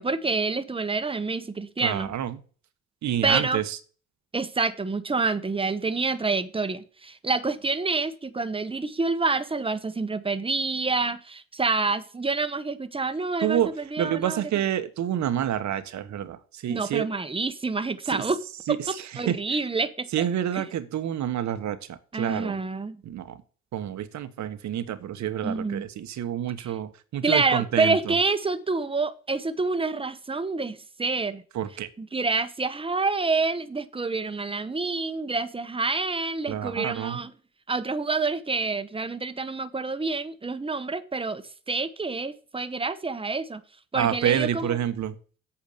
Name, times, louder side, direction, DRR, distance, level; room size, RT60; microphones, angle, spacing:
voice 1, 0.0-2.1 3.2-3.6 4.3-14.4 16.7-18.4 19.2-20.1 20.5-20.6 22.1-23.0 25.4-25.9 27.2-31.4 32.0-37.3 37.7-43.6 43.9-44.8, right 3 dB, 15° right, 1.1 m, -27 dB
voice 2, 1.8-2.4 3.0-3.8 13.4-17.1 18.1-18.2 18.7-19.6 20.1-22.6 23.0-23.4 23.7-28.2 31.5-31.9 36.5-37.2 43.9-45.2, right 10 dB, 65° right, 1.3 m, -28 dB
8.7 x 5.0 x 6.7 m
supercardioid pair, 65°, 31 cm